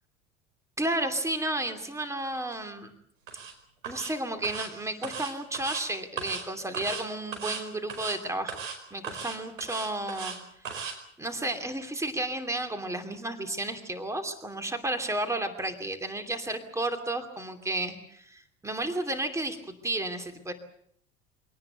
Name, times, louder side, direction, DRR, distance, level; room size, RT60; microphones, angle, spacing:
voice 1, 0.8-2.9 3.8-8.6 8.9-10.3 11.2-20.5, right 1 dB, 5° right, 7 dB, 2.7 m, -32 dB
sound 1, 3.3-3.5 3.8-4.1 4.4-4.7 5.0-5.8 6.2-6.4 6.7-7.0 7.3-7.6 7.9-8.2 8.5-8.8 9.0-10.4 10.7-10.9, right 6 dB, 80° right, 4.9 m, -36 dB
25.0 x 18.5 x 8.1 m, 0.68 s
figure-of-eight pair, 75°, 39 cm